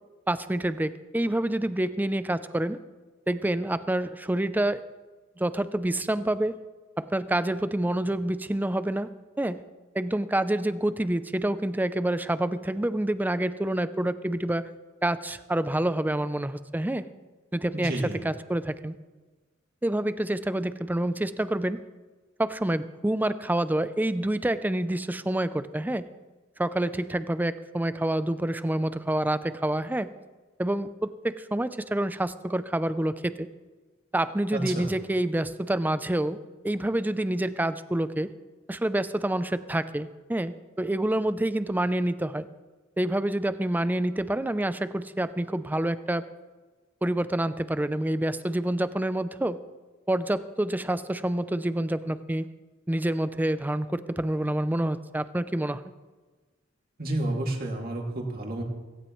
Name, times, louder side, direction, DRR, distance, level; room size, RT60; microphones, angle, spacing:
voice 1, 0.3-2.8 3.3-4.8 5.4-6.6 7.0-9.1 9.4-9.6 9.9-14.7 15.0-17.1 17.5-19.0 19.8-21.8 22.4-26.1 26.6-30.1 30.6-33.5 34.1-36.4 36.6-38.3 38.7-42.5 43.0-46.3 47.0-49.6 50.1-52.5 52.9-55.8, right 1 dB, 10° right, 13 dB, 0.5 m, -27 dB
voice 2, 17.7-18.2 34.5-34.9 57.0-58.6, right 1 dB, 50° right, 0 dB, 2.5 m, -30 dB
17.0 x 16.5 x 3.1 m, 1.3 s
head